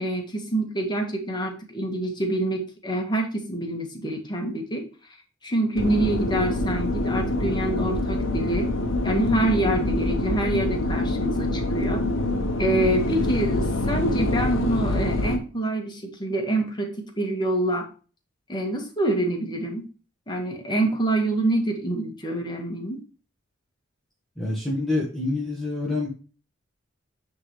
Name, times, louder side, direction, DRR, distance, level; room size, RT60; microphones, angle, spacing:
voice 1, 0.0-4.8 5.4-8.7 9.0-12.1 12.6-17.9 18.5-19.9 20.3-23.0, right 1 dB, 20° left, 2 dB, 1.7 m, -26 dB
sound 1, 5.8-15.4, left 1 dB, 75° left, 1.1 m, -25 dB
voice 2, 24.4-26.1, left 2 dB, ahead, -5 dB, 1.5 m, -27 dB
9.5 x 3.9 x 3.2 m, 0.35 s
head